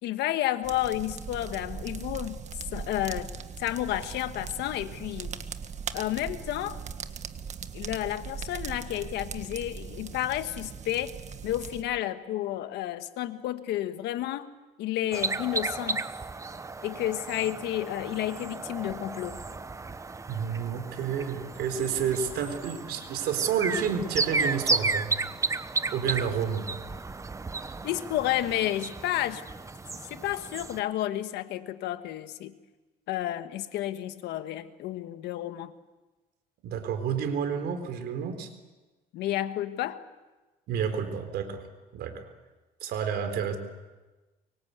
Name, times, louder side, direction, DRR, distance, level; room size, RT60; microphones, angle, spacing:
voice 1, 0.0-2.4 2.7-3.3 3.6-5.3 5.9-6.8 7.7-11.1 11.4-14.5 14.8-16.1 16.8-19.4 27.8-29.4 30.1-32.5 33.1-35.7 39.1-40.0, left 13 dB, 85° left, 10 dB, 1.5 m, -31 dB
sound 1, 0.6-11.8, right 6 dB, 45° right, 1.6 m, -39 dB
sound 2, 15.1-30.8, right 3 dB, 20° right, 1.0 m, -33 dB
voice 2, 20.3-25.1 25.9-26.7 36.6-38.5 40.7-41.6 41.9-42.3 42.8-43.6, right 7 dB, 75° right, 8 dB, 4.0 m, -30 dB
24.5 x 24.0 x 8.2 m, 1.2 s
cardioid pair, 110°, 17 cm